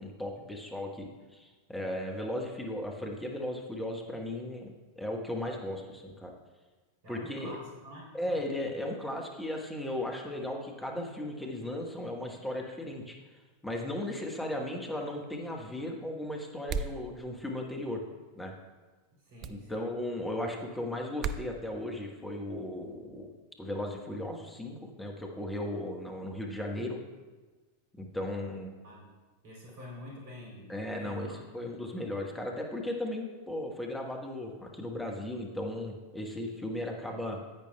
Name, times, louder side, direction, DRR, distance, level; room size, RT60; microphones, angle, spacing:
voice 1, 0.0-6.3 7.1-7.6 8.1-13.2 13.6-18.0 18.3-18.5 19.5-23.3 23.6-27.0 28.0-28.7 30.7-37.4, left 1 dB, 5° left, 1 dB, 1.1 m, -36 dB
voice 2, 7.0-8.4 19.1-19.9 28.8-29.1 29.4-31.7, left 1 dB, 55° right, -3 dB, 2.8 m, -47 dB
sound 1, 16.7-17.0 19.4-19.6 21.2-21.5, right 5 dB, 35° right, 0.3 m, -33 dB
10.5 x 8.7 x 2.3 m, 1.3 s
figure-of-eight pair, 90°, 0 cm